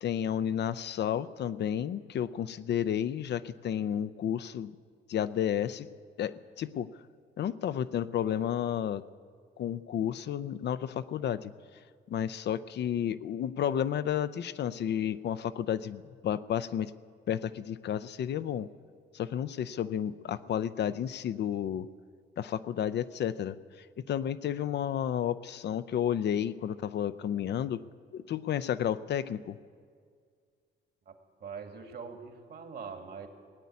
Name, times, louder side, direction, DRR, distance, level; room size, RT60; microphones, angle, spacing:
voice 1, 0.0-4.7 5.1-5.9 6.2-6.9 7.4-9.0 9.6-11.5 12.1-16.9 17.3-18.7 19.1-21.9 22.4-27.8 28.1-29.6, left 9 dB, 60° left, 14 dB, 0.5 m, -32 dB
voice 2, 31.1-33.3, right 5 dB, 55° right, 6 dB, 1.9 m, -43 dB
17.5 x 8.4 x 9.5 m, 2.1 s
cardioid pair, 90°, 20 cm